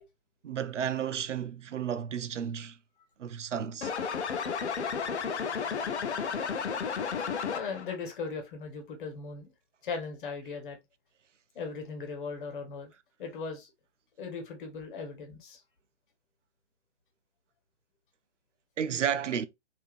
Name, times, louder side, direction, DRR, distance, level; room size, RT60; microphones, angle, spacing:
voice 1, 0.4-2.8 3.2-3.9 18.8-19.5, right 8 dB, 85° right, 0.5 m, -32 dB
sound 1, 3.8-7.9, left 6 dB, 70° left, 0.7 m, -32 dB
voice 2, 7.5-9.5 9.8-10.8 11.5-12.9 13.2-13.7 14.2-15.6, left 4 dB, 45° left, 1.1 m, -38 dB
3.4 x 2.7 x 2.4 m
figure-of-eight pair, 125°, 36 cm